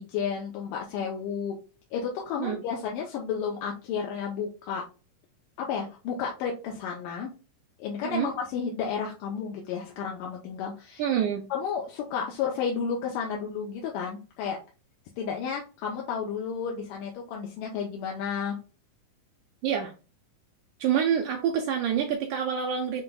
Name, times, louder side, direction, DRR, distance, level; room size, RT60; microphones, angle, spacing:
voice 1, 0.0-1.6 1.9-4.8 5.6-7.3 7.8-11.0 11.5-14.6 15.2-18.6, left 6 dB, 80° left, -1 dB, 2.3 m, -32 dB
voice 2, 11.0-11.5 19.6-19.9 20.8-23.0, right 8 dB, 80° right, 4 dB, 1.8 m, -27 dB
7.4 x 2.9 x 2.3 m, 0.34 s
omnidirectional pair, 3.9 m